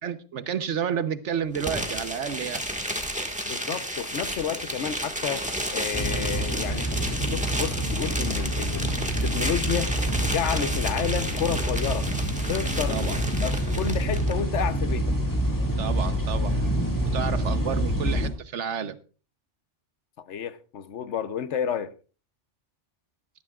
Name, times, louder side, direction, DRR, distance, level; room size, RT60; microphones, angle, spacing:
voice 1, 0.0-2.6 12.9-13.2 13.9-14.1 15.8-16.5 17.1-19.0, right 7 dB, 90° right, 1.3 m, -30 dB
sound 1, 1.5-14.3, equal, 5° right, 1.6 m, -32 dB
voice 2, 3.4-12.1 12.5-15.1 20.3-21.9, left 8 dB, 85° left, 1.2 m, -31 dB
sound 2, 5.9-18.3, right 1 dB, 15° left, 2.0 m, -27 dB
18.5 x 13.0 x 2.4 m
omnidirectional pair, 1.2 m